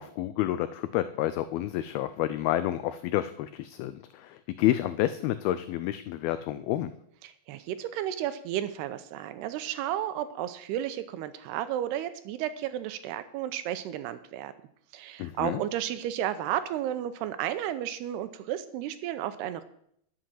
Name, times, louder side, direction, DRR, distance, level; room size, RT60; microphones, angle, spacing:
voice 1, 0.0-6.9 15.2-15.6, left 13 dB, 85° left, 12 dB, 2.1 m, -29 dB
voice 2, 7.2-14.5 14.9-19.6, right 11 dB, 80° right, 12 dB, 2.6 m, -33 dB
11.5 x 7.9 x 7.7 m, 0.71 s
omnidirectional pair, 4.9 m